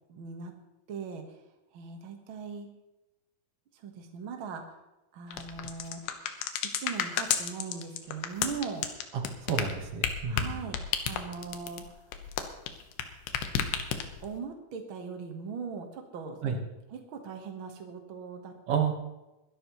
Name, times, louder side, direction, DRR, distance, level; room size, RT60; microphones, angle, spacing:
voice 1, 0.1-0.5 0.9-1.4 1.7-2.7 3.8-4.7 5.1-6.0 6.8-9.0 10.3-11.8 14.2-16.4 16.9-18.9, right 5 dB, 75° right, 3 dB, 1.2 m, -40 dB
sound 1, 5.3-13.0 13.3-14.3, left 8 dB, 85° left, 3.1 m, -32 dB
voice 2, 9.1-10.5 16.4-16.6 18.7-18.9, right 7 dB, 55° right, 3 dB, 1.7 m, -30 dB
22.0 x 12.0 x 3.1 m, 1.0 s
omnidirectional pair, 4.5 m